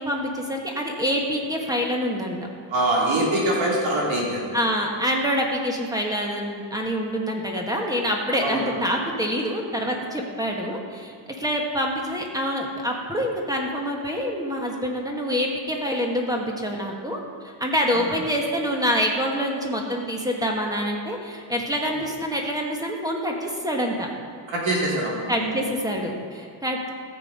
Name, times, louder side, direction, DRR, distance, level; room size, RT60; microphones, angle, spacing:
voice 1, 0.0-2.4 4.5-17.2 17.4-24.1 25.3-26.9, equal, 10° right, 0 dB, 1.3 m, -26 dB
voice 2, 2.7-4.5 8.4-8.7 17.9-18.0 24.5-25.6, right 1 dB, 80° right, -3 dB, 3.2 m, -24 dB
14.0 x 7.7 x 5.4 m, 2.3 s
wide cardioid pair, 165°, 46 cm